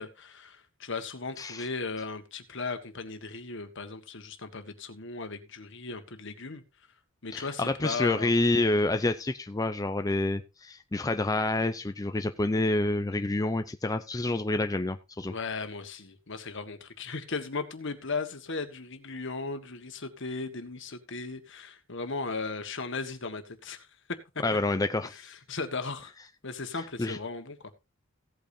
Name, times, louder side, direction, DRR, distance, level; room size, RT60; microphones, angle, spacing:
voice 1, 0.0-6.6 7.2-8.3 15.3-24.4 25.1-26.1 26.4-27.6, left 4 dB, 65° left, 8 dB, 1.6 m, -37 dB
voice 2, 7.3-15.3 24.4-25.2 27.0-27.2, left 2 dB, 15° left, 8 dB, 0.5 m, -28 dB
16.5 x 8.6 x 2.8 m, 0.24 s
head